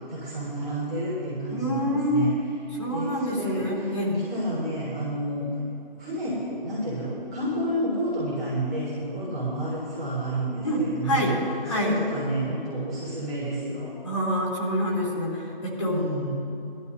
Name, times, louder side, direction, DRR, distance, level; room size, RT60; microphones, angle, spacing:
voice 1, 0.1-2.3 2.9-3.9 4.3-5.4 6.0-11.3 11.7-13.9 15.8-16.3, right 1 dB, ahead, -19 dB, 1.0 m, -30 dB
voice 2, 1.5-2.3 2.8-4.2 10.6-11.4 11.6-12.0 14.0-16.0, equal, 30° left, -4 dB, 2.4 m, -26 dB
19.5 x 12.5 x 2.7 m, 2.8 s
figure-of-eight pair, 175°, 29 cm